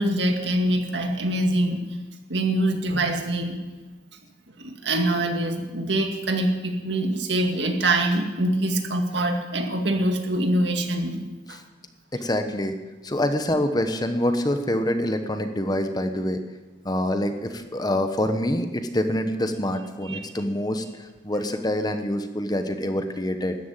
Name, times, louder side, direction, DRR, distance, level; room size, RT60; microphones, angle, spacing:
voice 1, 0.0-1.9 2.3-3.6 4.6-11.6 20.1-20.2, right 1 dB, 65° right, 4 dB, 2.1 m, -24 dB
voice 2, 12.1-12.8 13.0-16.4 16.8-23.6, left 1 dB, 20° left, 7 dB, 1.0 m, -26 dB
13.5 x 11.0 x 9.0 m, 1.2 s
head